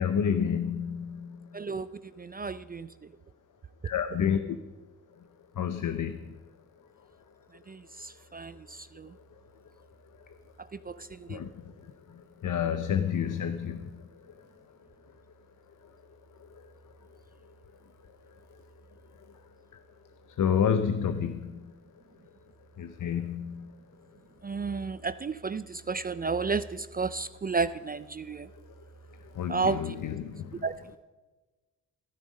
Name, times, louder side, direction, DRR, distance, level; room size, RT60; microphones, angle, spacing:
voice 1, 0.0-1.5 3.8-4.6 5.6-6.2 11.3-11.6 12.4-14.0 20.4-21.6 22.8-23.7 29.3-30.6, left 8 dB, 60° left, 9 dB, 0.7 m, -29 dB
voice 2, 1.5-2.9 7.7-9.2 10.6-11.4 24.4-28.5 29.5-30.2 30.6-31.0, right 4 dB, 25° right, 15 dB, 0.4 m, -33 dB
13.0 x 12.0 x 5.2 m, 1.2 s
cardioid pair, 80°, 34 cm